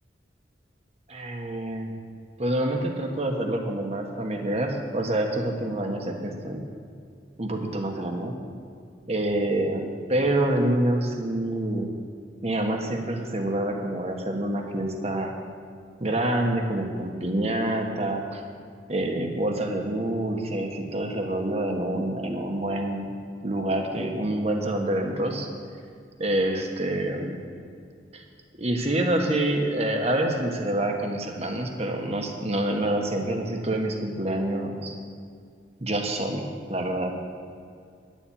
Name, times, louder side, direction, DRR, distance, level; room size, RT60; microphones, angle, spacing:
voice 1, 1.1-1.9 2.4-6.6 7.4-8.3 9.1-11.9 12.4-15.3 16.0-18.4 18.9-23.1 23.4-25.5 26.2-27.4 28.1-28.2 28.6-34.9 35.8-37.1, right 1 dB, 35° right, 3 dB, 1.4 m, -27 dB
11.0 x 7.4 x 8.7 m, 2.3 s
head